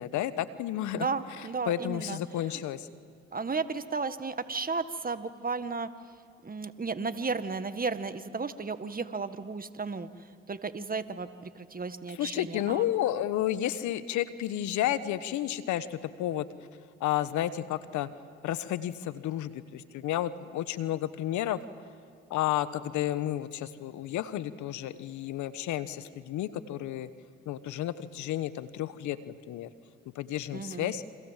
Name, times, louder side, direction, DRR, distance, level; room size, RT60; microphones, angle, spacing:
voice 1, 0.0-1.1 1.4-2.9 12.1-16.4 17.0-18.1 18.4-21.6 22.3-27.1 27.5-29.7 30.1-31.0, left 12 dB, 75° left, 14 dB, 1.3 m, -31 dB
voice 2, 0.9-2.2 2.5-2.6 3.3-5.9 6.4-10.1 10.5-12.8 30.5-30.9, right 4 dB, 30° right, 11 dB, 1.8 m, -34 dB
29.0 x 26.0 x 7.5 m, 2.2 s
supercardioid pair, 60°, 30 cm